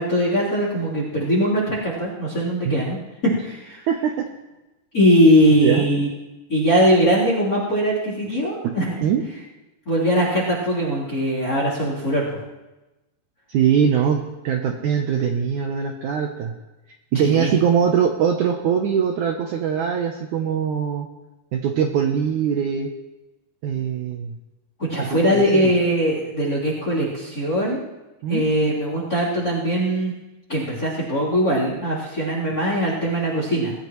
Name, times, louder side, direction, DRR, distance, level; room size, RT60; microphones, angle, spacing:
voice 1, 0.0-3.0 3.2-3.8 4.9-6.1 6.5-9.1 9.8-12.4 17.2-17.5 24.8-27.8 28.3-30.1 30.5-33.7, equal, 25° left, -9 dB, 3.5 m, -21 dB
voice 2, 3.9-4.2 5.5-5.9 8.6-8.7 9.0-9.2 13.5-16.5 17.1-21.1 21.5-22.9 23.6-24.3 25.0-25.7 28.2-28.5, right 7 dB, 90° right, 3 dB, 1.7 m, -22 dB
20.5 x 14.5 x 3.1 m, 1.0 s
omnidirectional pair, 4.7 m